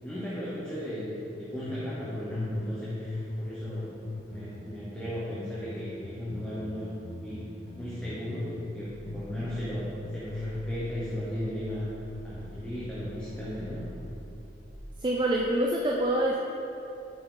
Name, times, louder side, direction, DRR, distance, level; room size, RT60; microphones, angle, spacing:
voice 1, 0.0-6.9 7.2-7.4 7.8-11.9 12.2-13.9, equal, 5° left, -10 dB, 1.0 m, -36 dB
sound 1, 1.7-2.8 3.0-8.7 9.1-10.8 11.0-14.1, left 2 dB, 35° left, 0.4 m, -39 dB
sound 2, 8.8-14.7, equal, 85° right, 1.2 m, -47 dB
voice 2, 15.0-16.4, right 1 dB, 25° right, -2 dB, 0.4 m, -26 dB
7.7 x 6.0 x 3.9 m, 2.9 s
head